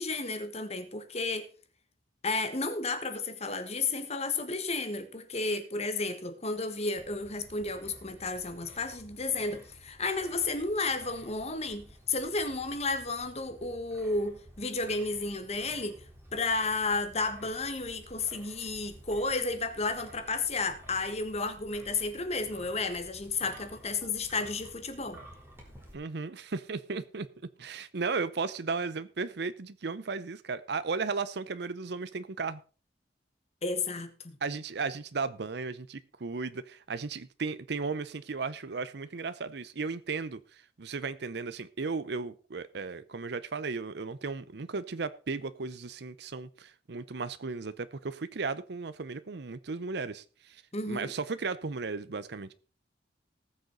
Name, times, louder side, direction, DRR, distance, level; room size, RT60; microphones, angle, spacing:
voice 1, 0.0-1.5 2.2-16.0 16.3-25.2 33.6-34.4 50.7-51.1, left 3 dB, 35° left, 1.5 m, -32 dB
Wind, 6.9-25.9, equal, 15° right, 3.6 m, -53 dB
voice 2, 25.9-27.3 27.6-32.6 34.4-50.6 50.9-52.5, right 4 dB, 65° right, 0.7 m, -35 dB
19.5 x 6.5 x 4.0 m
head